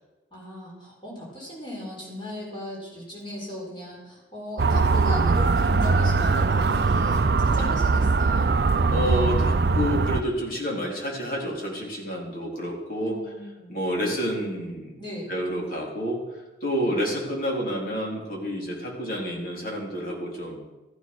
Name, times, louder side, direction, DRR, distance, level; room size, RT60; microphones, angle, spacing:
voice 1, 0.3-8.5 13.0-13.8 15.0-15.4 16.8-17.1, left 1 dB, 25° left, -3 dB, 5.5 m, -37 dB
Motor vehicle (road) / Siren, 4.6-10.2, right 4 dB, 65° right, 0.5 m, -21 dB
voice 2, 8.9-13.2 13.7-15.0 15.3-16.2 16.6-20.6, equal, 50° left, -2 dB, 4.1 m, -29 dB
14.5 x 12.0 x 6.3 m, 1.1 s
head